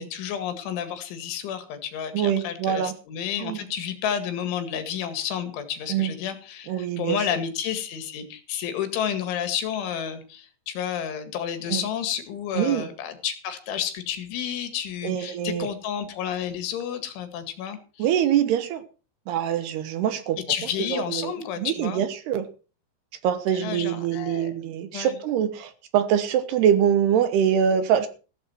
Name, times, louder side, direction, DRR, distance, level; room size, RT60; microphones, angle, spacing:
voice 1, 0.0-17.8 20.5-22.0 23.5-24.5 24.9-25.2, left 9 dB, 85° left, 9 dB, 4.5 m, -31 dB
voice 2, 2.1-3.0 3.4-3.6 5.9-6.1 6.7-7.3 11.7-11.8 12.5-12.9 15.0-15.7 18.0-18.8 19.3-20.4 20.9-22.5 23.2-28.1, right 9 dB, 70° right, 12 dB, 2.9 m, -24 dB
15.0 x 14.0 x 4.5 m, 0.35 s
omnidirectional pair, 5.3 m